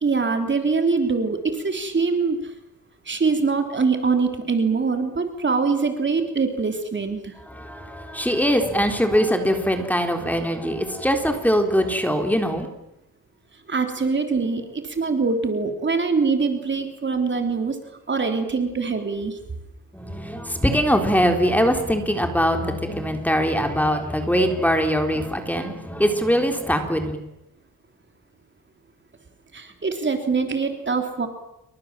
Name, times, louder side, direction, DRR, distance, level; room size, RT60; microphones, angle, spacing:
voice 1, 0.0-2.5 3.0-7.3 13.7-17.8 18.1-19.4 29.5-31.3, right 4 dB, 30° right, 6 dB, 3.3 m, -23 dB
voice 2, 7.5-12.7 19.9-27.2, equal, 5° left, 5 dB, 3.8 m, -22 dB
29.0 x 24.0 x 7.5 m, 0.87 s
cardioid pair, 120°, 36 cm